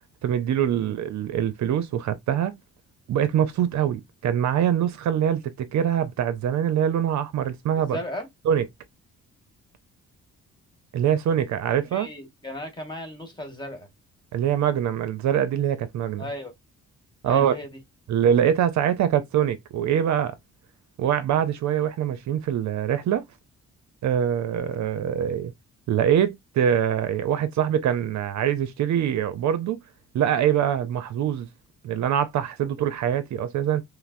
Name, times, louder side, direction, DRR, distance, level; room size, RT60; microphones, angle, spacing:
voice 1, 0.2-2.6 3.1-8.0 8.4-8.7 10.9-12.1 14.3-16.3 17.2-17.5 18.1-20.4 21.0-23.2 24.0-25.5 25.9-29.8 30.1-31.5 31.8-33.8, right 9 dB, 65° right, 0.6 m, -24 dB
voice 2, 7.7-8.3 11.7-13.9 16.2-16.5 17.2-17.8, equal, 15° left, 1.5 m, -35 dB
5.5 x 2.0 x 2.5 m
cardioid pair, 90°, 30 cm